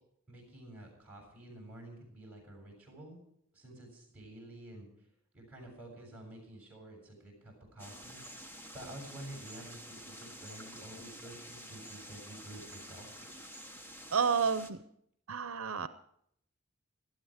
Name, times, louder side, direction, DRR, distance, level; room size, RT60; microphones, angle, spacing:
voice 1, 0.3-3.2 3.5-5.1 5.3-8.2 8.5-13.2, right 1 dB, 5° right, 0 dB, 7.3 m, -50 dB
sound 1, 7.8-14.7, equal, 10° left, 1.1 m, -49 dB
voice 2, 14.1-14.8 15.3-15.9, right 6 dB, 70° right, 12 dB, 0.7 m, -30 dB
18.0 x 13.0 x 5.0 m, 0.69 s
head